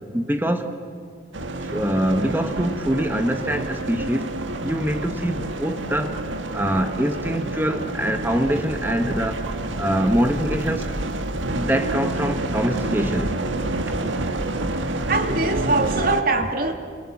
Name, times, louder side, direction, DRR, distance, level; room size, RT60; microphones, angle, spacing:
voice 1, 0.1-0.8 1.7-10.9 11.5-13.3 13.9-14.2, equal, 10° right, 6 dB, 1.2 m, -24 dB
sound 1, 1.3-16.2, right 2 dB, 75° right, 1.7 m, -28 dB
voice 2, 15.1-16.7, right 3 dB, 45° right, 5 dB, 2.4 m, -22 dB
30.0 x 27.0 x 7.3 m, 2.2 s
head